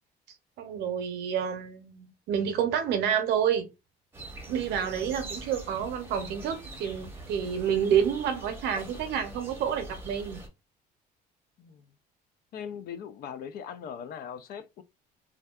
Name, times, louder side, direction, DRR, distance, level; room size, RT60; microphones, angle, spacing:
voice 1, 0.6-3.7 4.5-10.4, right 8 dB, 85° right, 0.7 m, -29 dB
sound 1, 4.1-10.5, right 2 dB, 15° right, 0.8 m, -43 dB
voice 2, 12.5-14.8, left 8 dB, 65° left, 0.4 m, -40 dB
2.6 x 2.3 x 2.2 m
cardioid pair, 110°, 17 cm